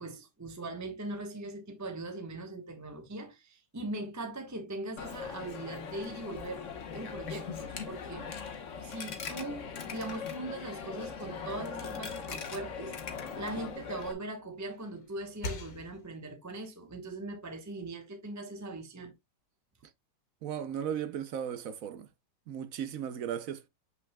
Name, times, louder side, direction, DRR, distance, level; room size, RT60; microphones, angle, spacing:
voice 1, 0.0-6.7 6.9-8.3 8.8-13.0 13.3-19.1, right 2 dB, 10° right, 0.9 m, -40 dB
Coin (dropping), 5.0-14.1, left 6 dB, 50° left, 1.3 m, -40 dB
sound 1, 12.1-14.1 14.5-16.3, left 3 dB, 85° left, 2.0 m, -46 dB
voice 2, 20.4-22.1 22.5-23.7, right 9 dB, 60° right, 0.9 m, -36 dB
7.7 x 6.0 x 2.2 m
omnidirectional pair, 1.9 m